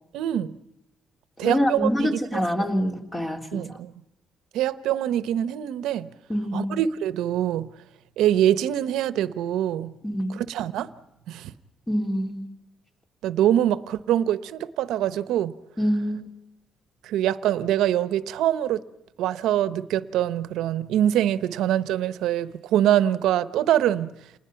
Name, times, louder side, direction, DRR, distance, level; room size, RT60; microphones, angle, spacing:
voice 1, 0.1-0.5 1.4-2.4 3.5-3.9 4.5-6.1 6.5-7.7 8.2-9.9 10.3-10.9 11.3-11.5 13.2-15.5 17.0-18.8 19.2-24.1, right 11 dB, 90° right, 14 dB, 0.9 m, -24 dB
voice 2, 1.4-3.8 6.3-6.8 10.0-10.4 11.9-12.5 15.8-16.3, equal, 20° left, 3 dB, 3.3 m, -26 dB
28.0 x 20.0 x 5.9 m, 0.87 s
cardioid pair, 90°, 0 cm